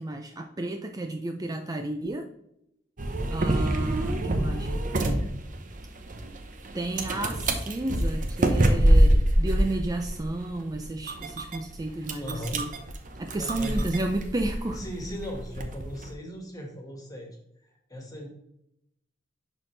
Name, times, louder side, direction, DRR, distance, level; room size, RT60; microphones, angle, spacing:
voice 1, 0.0-2.3 3.3-5.3 6.7-12.7 13.2-14.9, right 2 dB, 20° right, 5 dB, 0.4 m, -32 dB
sound 1, 3.0-16.1, right 1 dB, 45° right, 0.8 m, -26 dB
voice 2, 12.2-12.6 13.4-13.9 14.7-17.3 17.9-18.3, equal, 20° left, 1 dB, 1.7 m, -37 dB
11.0 x 4.3 x 3.3 m, 0.80 s
head